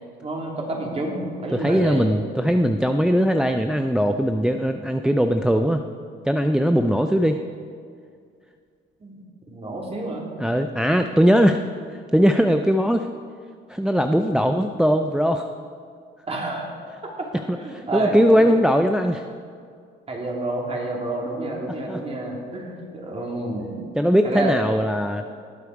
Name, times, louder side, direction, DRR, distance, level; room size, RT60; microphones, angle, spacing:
voice 1, 0.2-2.1 9.0-9.1 9.5-10.2 16.3-16.8 17.0-17.3 17.5-18.6 20.1-23.8 24.2-24.5, right 2 dB, 30° right, -1 dB, 2.9 m, -29 dB
voice 2, 1.5-5.8 6.2-7.4 10.4-11.6 11.9-13.1 13.7-15.5 17.5-19.3 21.9-22.0 24.0-25.2, equal, 5° right, 6 dB, 0.4 m, -20 dB
18.5 x 8.3 x 4.8 m, 2.2 s
cardioid pair, 105°, 21 cm